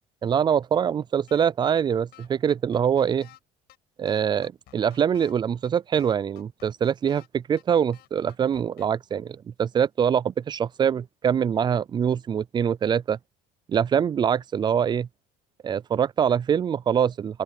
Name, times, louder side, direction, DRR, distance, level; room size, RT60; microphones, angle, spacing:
voice 1, 0.2-3.3 4.0-13.2 13.7-15.1 15.6-17.4, right 8 dB, 25° right, 0.3 m, -24 dB
sound 1, 1.3-1.5 1.8-1.9 2.1-3.4 3.7-3.8 4.1-5.3 5.6-5.7 6.0-7.3 7.6-7.7 7.9-8.9, left 15 dB, 65° left, 4.9 m, -52 dB
open air
cardioid pair, 125°, 19 cm